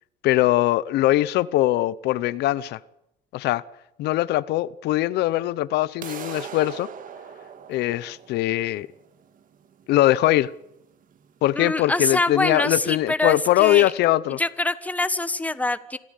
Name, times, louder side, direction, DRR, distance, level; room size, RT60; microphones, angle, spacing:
voice 1, 0.2-2.8 3.3-3.6 4.0-6.9 7.7-8.9 9.9-10.5 11.4-14.4, left 15 dB, 80° left, 0.8 m, -21 dB
sound 1, 6.0-12.0, right 8 dB, 55° right, 1.9 m, -41 dB
voice 2, 11.5-13.9 14.4-16.0, left 2 dB, 10° left, 1.3 m, -25 dB
26.0 x 14.0 x 8.2 m
cardioid pair, 110°, 17 cm